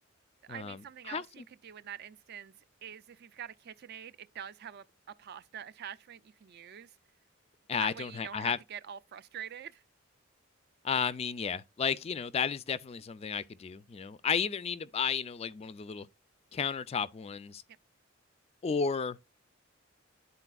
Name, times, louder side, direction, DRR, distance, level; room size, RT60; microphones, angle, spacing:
voice 1, 0.5-2.5 2.8-4.8 5.2-7.0 7.8-9.8, right 9 dB, 50° right, 0.4 m, -45 dB
voice 2, 1.1-1.4 7.7-8.6 10.8-16.1 16.5-17.6 18.6-19.3, left 6 dB, 30° left, 0.3 m, -33 dB
11.0 x 4.1 x 2.3 m
head